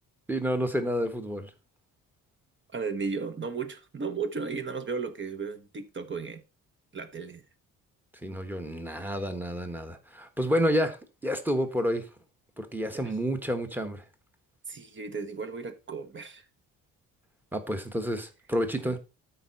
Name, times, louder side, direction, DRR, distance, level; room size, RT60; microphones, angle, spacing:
voice 1, 0.3-1.5 8.2-11.0 11.2-12.0 12.6-14.0 17.5-19.0, equal, 5° right, 1.3 m, -29 dB
voice 2, 2.7-6.4 6.9-7.4 12.9-13.1 14.7-16.5 18.8-19.0, right 5 dB, 35° right, 1.2 m, -35 dB
12.5 x 4.7 x 4.1 m
cardioid pair, 115°, 35 cm